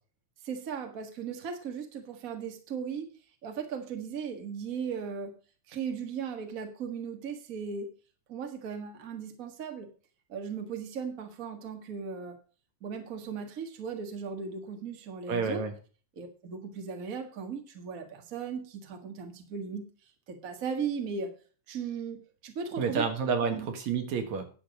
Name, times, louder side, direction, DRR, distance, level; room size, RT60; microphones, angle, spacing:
voice 1, 0.4-3.1 3.4-5.3 5.7-7.9 8.3-9.9 10.3-12.4 12.8-15.6 16.2-19.8 20.3-21.3 21.7-23.1 23.5-23.7, right 6 dB, 35° right, 4 dB, 1.6 m, -37 dB
voice 2, 15.3-15.7 22.8-24.5, right 5 dB, 75° right, 6 dB, 2.7 m, -29 dB
10.5 x 7.7 x 5.2 m, 0.38 s
omnidirectional pair, 3.3 m